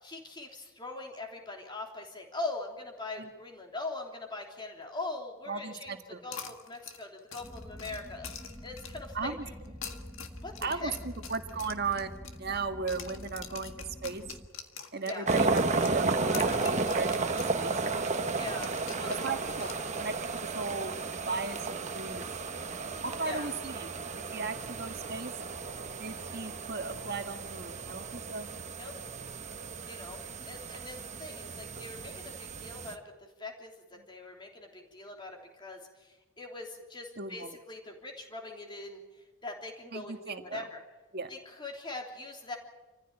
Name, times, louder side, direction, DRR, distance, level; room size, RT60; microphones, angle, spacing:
voice 1, 0.0-6.0 6.2-8.3 8.6-9.3 10.4-10.9 15.0-15.2 18.3-18.7 19.0-19.3 23.2-23.5 28.7-28.9 29.8-33.0 33.4-40.8 41.3-42.6, left 3 dB, 20° left, 1 dB, 3.3 m, -42 dB
voice 2, 5.5-6.2 9.1-9.4 10.6-14.2 14.9-17.8 19.1-22.2 23.0-23.9 24.3-25.3 26.0-28.5 37.2-37.6 39.9-40.7 41.1-41.3, right 4 dB, 50° right, 6 dB, 1.6 m, -37 dB
sound 1, 6.3-9.1 9.7-12.6 12.9-17.6 17.8-17.9 18.6-20.3, left 7 dB, 70° left, 1.8 m, -45 dB
sound 2, 7.4-14.5, equal, 10° right, 1.6 m, -46 dB
sound 3, 15.3-33.0, right 3 dB, 35° right, 1.1 m, -33 dB
27.0 x 15.0 x 9.0 m, 1.2 s
head